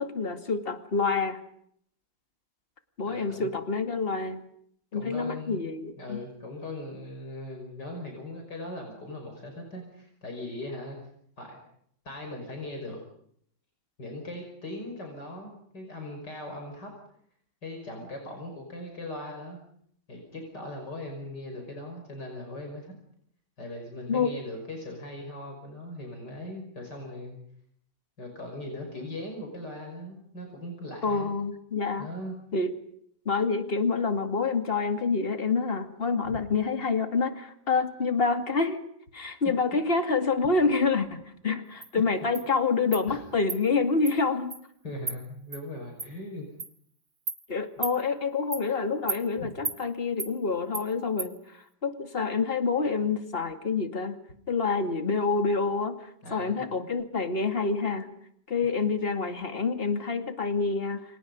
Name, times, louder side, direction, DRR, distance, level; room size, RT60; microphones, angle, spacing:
voice 1, 0.0-1.4 3.0-4.4 4.9-6.2 24.1-24.3 31.0-32.1 32.5-32.8 33.3-38.8 39.1-44.5 47.5-51.4 51.8-54.2 54.5-58.1 58.5-61.0, left 4 dB, 30° left, 7 dB, 2.5 m, -27 dB
voice 2, 3.0-3.5 4.9-5.6 6.0-11.0 11.4-11.6 12.0-13.0 14.0-16.9 17.6-19.6 20.1-22.9 23.6-27.4 28.2-31.3 32.0-32.4 36.2-36.4 43.1-43.2 44.8-46.4 49.4-49.5 56.2-56.7, left 1 dB, 65° left, 3 dB, 6.3 m, -39 dB
Insect, 41.8-41.9 42.4-42.5 42.9-43.0 43.5-43.6 44.1-44.2 44.5-44.6 45.1-45.2 45.5-45.6 46.0-46.1 46.6-46.7 47.3-47.4 47.8-48.0 48.5-48.7 49.1-49.2 49.7-49.8 50.2-50.3 50.7-50.9 51.2-51.3, right 4 dB, 55° right, 3.6 m, -33 dB
29.5 x 27.5 x 5.4 m, 0.68 s
omnidirectional pair, 2.0 m